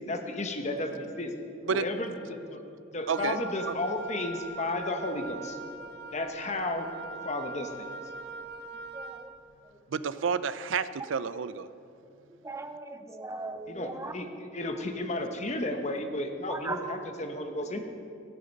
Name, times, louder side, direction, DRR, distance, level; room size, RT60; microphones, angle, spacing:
voice 1, 0.1-1.3 1.7-2.6 2.9-5.6 6.1-6.9 7.2-7.9 13.7-17.8, left 2 dB, 35° left, 6 dB, 1.0 m, -33 dB
Wind instrument woodwind instrument, 3.1-9.3, right 3 dB, 55° right, 0.7 m, -42 dB
voice 2, 3.1-3.4 9.9-11.7, right 6 dB, 85° right, 15 dB, 0.4 m, -30 dB
voice 3, 8.9-9.3 12.4-14.1 16.5-17.0, right 3 dB, 15° right, 8 dB, 0.6 m, -38 dB
16.0 x 8.5 x 5.3 m, 2.6 s
head